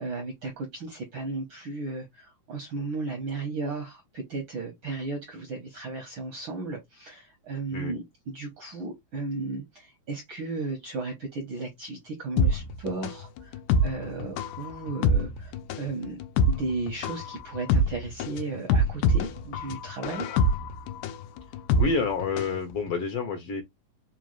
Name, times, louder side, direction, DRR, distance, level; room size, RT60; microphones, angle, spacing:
voice 1, 0.0-20.3, right 3 dB, 70° right, 1.2 m, -35 dB
sound 1, 12.4-22.6 22.9-23.0, left 1 dB, 90° left, 2.1 m, -25 dB
voice 2, 21.8-23.6, left 4 dB, 70° left, 1.5 m, -28 dB
5.0 x 2.3 x 3.0 m
omnidirectional pair, 3.5 m